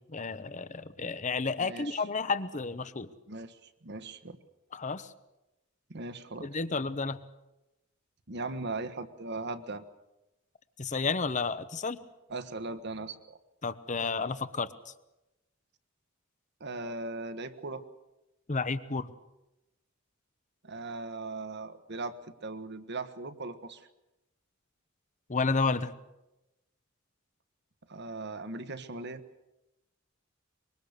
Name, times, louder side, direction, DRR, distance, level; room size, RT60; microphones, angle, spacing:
voice 1, 0.1-3.1 4.7-5.1 6.4-7.2 10.8-12.0 13.6-14.9 18.5-19.1 25.3-25.9, left 4 dB, 35° left, 14 dB, 1.0 m, -31 dB
voice 2, 1.6-2.0 3.3-4.4 5.9-6.5 8.3-9.8 12.3-13.4 16.6-17.8 20.6-23.8 27.9-29.2, right 3 dB, 55° right, 10 dB, 1.4 m, -39 dB
24.5 x 22.5 x 6.7 m, 0.96 s
head